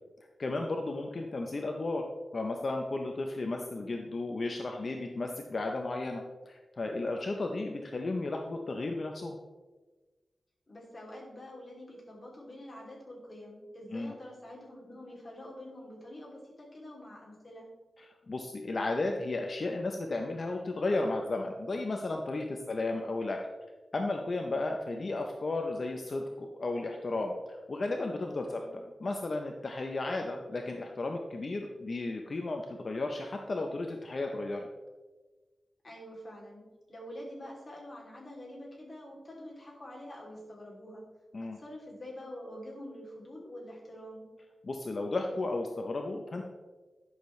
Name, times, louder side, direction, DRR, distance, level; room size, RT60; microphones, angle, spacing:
voice 1, 0.4-2.1 2.3-9.4 13.9-14.1 18.3-23.4 23.9-34.7 41.3-41.6 44.6-46.4, left 2 dB, 45° left, 3 dB, 0.7 m, -34 dB
voice 2, 7.4-7.8 10.7-17.7 28.5-28.8 35.8-41.0 41.4-44.2, left 1 dB, 30° left, -4 dB, 2.8 m, -46 dB
11.0 x 6.5 x 3.2 m, 1.3 s
wide cardioid pair, 125°, 0 cm